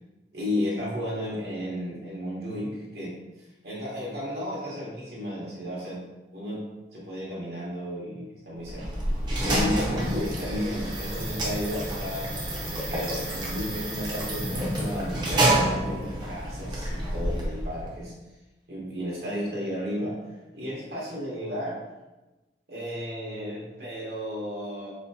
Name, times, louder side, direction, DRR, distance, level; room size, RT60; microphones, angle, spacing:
voice 1, 0.3-3.1 3.6-6.0 6.3-6.6 6.9-8.9 9.4-18.1 18.7-20.2 20.5-21.8 22.7-24.9, equal, 60° right, -5 dB, 1.1 m, -33 dB
sound 1, 8.6-17.9, right 1 dB, 25° right, 0.7 m, -28 dB
4.3 x 2.8 x 2.7 m, 1.1 s
head